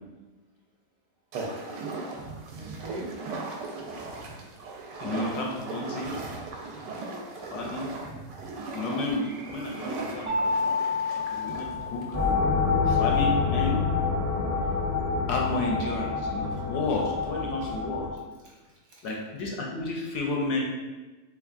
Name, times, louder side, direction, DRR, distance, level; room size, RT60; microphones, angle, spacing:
sound 1, 1.3-12.3, right 3 dB, 85° right, 1.2 m, -38 dB
voice 1, 2.5-3.1 11.0-11.4 11.6-11.8 17.6-17.7 18.4-19.1, right 2 dB, 60° right, -4 dB, 1.1 m, -43 dB
voice 2, 5.0-6.1 7.5-7.9 8.7-10.5 11.3-12.0 12.8-13.8 15.3-18.1 19.0-20.6, left 2 dB, 75° left, -1 dB, 1.1 m, -31 dB
Mallet percussion, 10.3-12.8, left 3 dB, 40° right, 0.4 m, -30 dB
sound 2, 12.1-18.1, left 5 dB, 30° left, 0.3 m, -26 dB
3.5 x 3.4 x 2.4 m, 1.2 s
omnidirectional pair, 1.9 m